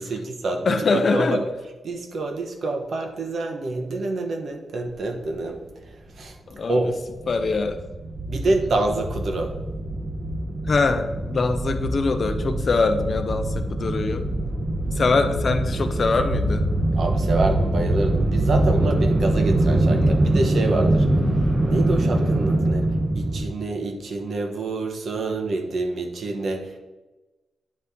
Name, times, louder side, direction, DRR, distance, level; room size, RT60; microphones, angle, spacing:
voice 1, 0.0-1.4 1.8-5.6 6.2-6.4 6.7-6.9 8.3-9.5 16.9-21.1 21.7-22.9 23.1-26.7, right 2 dB, 55° right, 4 dB, 0.9 m, -27 dB
voice 2, 0.7-1.4 6.5-6.9 7.3-7.8 10.7-14.2 14.9-16.7 20.0-20.2, left 4 dB, 40° left, 8 dB, 0.5 m, -23 dB
sound 1, 6.1-6.2 6.5-6.6 6.8-23.4, right 1 dB, 25° right, 0.8 m, -23 dB
9.5 x 4.2 x 3.6 m, 1.1 s
wide cardioid pair, 155°, 0 cm